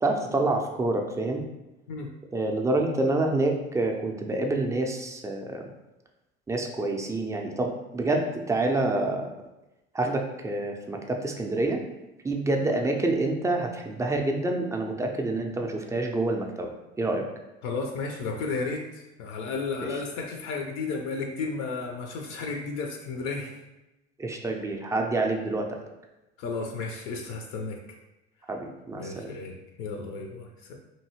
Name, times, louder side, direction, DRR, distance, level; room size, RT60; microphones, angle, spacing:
voice 1, 0.0-1.5 2.3-5.6 6.5-9.3 9.9-11.8 12.2-16.7 17.0-17.3 19.8-19.9 24.2-25.8 28.5-29.3, right 2 dB, 10° right, 2 dB, 0.4 m, -27 dB
voice 2, 17.6-23.6 26.4-27.8 29.0-30.8, left 4 dB, 55° left, 2 dB, 0.5 m, -33 dB
2.8 x 2.6 x 2.8 m, 0.96 s
hypercardioid pair, 65°, 31 cm